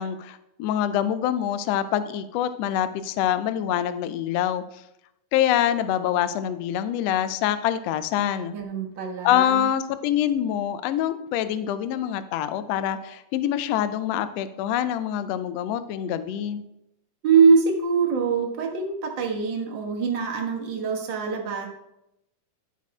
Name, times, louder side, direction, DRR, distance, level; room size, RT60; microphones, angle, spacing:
voice 1, 0.0-4.6 5.3-8.6 9.2-16.6, left 10 dB, 90° left, 11 dB, 1.4 m, -25 dB
voice 2, 8.5-9.7 17.2-21.7, right 5 dB, 50° right, 1 dB, 1.5 m, -23 dB
12.0 x 4.2 x 4.8 m, 0.84 s
omnidirectional pair, 3.5 m